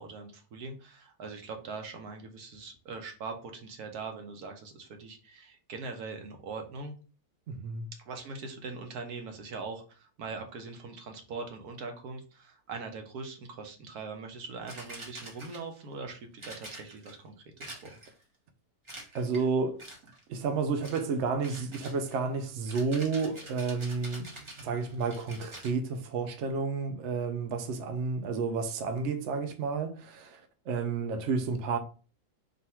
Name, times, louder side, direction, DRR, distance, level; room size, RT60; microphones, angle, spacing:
voice 1, 0.0-6.9 8.1-18.0, right 4 dB, 75° right, 1.4 m, -41 dB
voice 2, 7.5-7.9 19.1-19.8 20.3-24.3 24.6-30.4 30.7-31.8, right 4 dB, 60° right, 0.8 m, -31 dB
sound 1, 14.7-15.8 16.4-17.2 17.6-18.2 18.9-19.5 19.8-20.2 20.8-21.1 21.4-25.8, right 1 dB, 20° right, 0.9 m, -46 dB
3.9 x 2.6 x 4.3 m
omnidirectional pair, 1.7 m